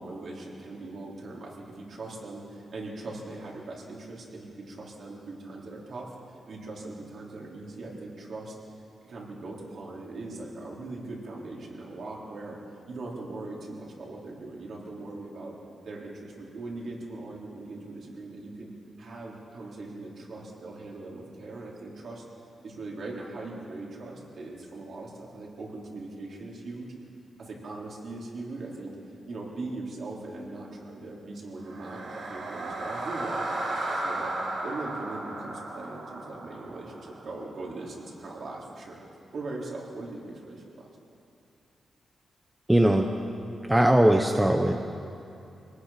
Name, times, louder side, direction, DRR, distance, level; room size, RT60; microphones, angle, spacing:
voice 1, 0.0-6.1 6.5-8.5 9.0-12.6 12.9-15.6 15.8-18.7 19.0-22.2 22.6-26.9 27.4-28.9 29.3-34.3 34.6-39.0 39.3-40.6, right 2 dB, 50° right, -3 dB, 3.9 m, -40 dB
sound 1, 31.6-37.8, right 2 dB, 75° right, 6.5 m, -35 dB
voice 2, 42.7-43.1 43.7-44.8, right 1 dB, 5° right, 4 dB, 0.8 m, -20 dB
25.0 x 18.5 x 5.9 m, 2.6 s
wide cardioid pair, 175°, 0 cm